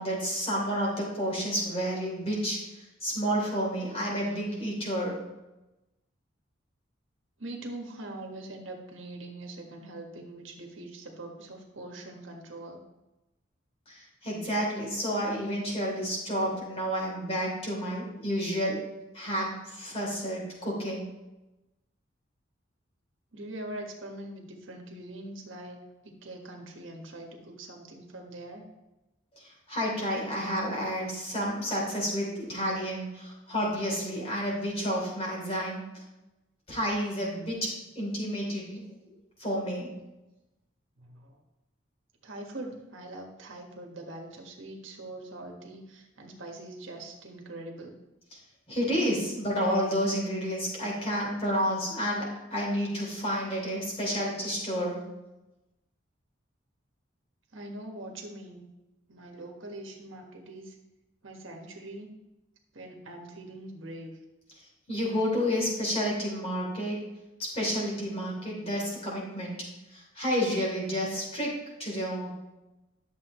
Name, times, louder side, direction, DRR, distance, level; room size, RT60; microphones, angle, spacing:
voice 1, 0.0-5.2 13.9-18.8 19.1-21.0 29.3-36.0 36.7-39.9 48.7-55.0 64.6-67.1 67.4-69.6 69.9-71.5 71.8-72.3, equal, 30° left, -4 dB, 3.4 m, -30 dB
voice 2, 7.4-12.8 23.3-28.6 41.0-41.4 42.2-47.9 57.5-58.6 59.1-60.8 61.2-62.1 62.7-64.1, right 1 dB, 80° right, 1 dB, 1.5 m, -43 dB
11.5 x 7.2 x 3.1 m, 0.99 s
head